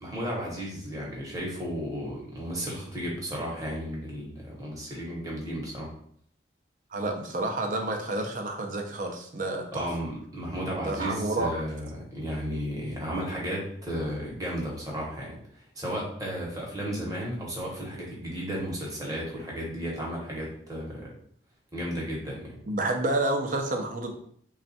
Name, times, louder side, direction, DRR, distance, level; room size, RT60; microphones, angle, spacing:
voice 1, 0.0-5.9 9.7-21.1 21.7-22.5, equal, 20° right, -4 dB, 1.0 m, -34 dB
voice 2, 6.9-9.9 10.8-11.5 22.7-24.1, right 2 dB, 45° right, 3 dB, 0.5 m, -29 dB
3.3 x 2.4 x 4.0 m, 0.63 s
head